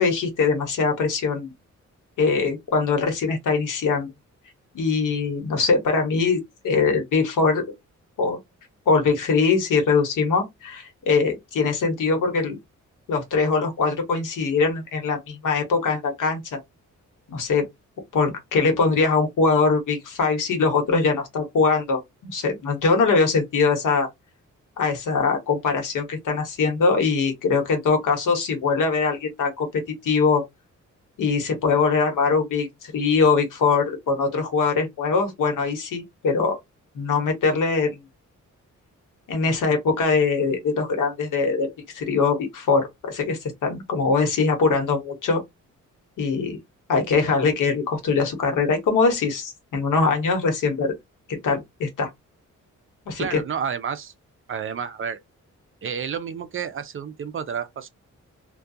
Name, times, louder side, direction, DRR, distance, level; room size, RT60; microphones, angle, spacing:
voice 1, 0.0-1.5 2.2-4.1 4.7-7.6 8.2-8.4 8.9-12.6 13.1-16.6 17.3-17.7 18.1-24.1 24.8-30.4 31.2-36.5 36.9-38.0 39.3-45.4 46.2-46.6 46.9-50.9 51.3-52.1 53.1-53.4, left 4 dB, 80° left, 1.0 m, -22 dB
voice 2, 53.2-54.1 54.5-55.2 55.8-57.9, right 7 dB, 45° right, 0.4 m, -30 dB
2.3 x 2.2 x 2.6 m
wide cardioid pair, 115°, 31 cm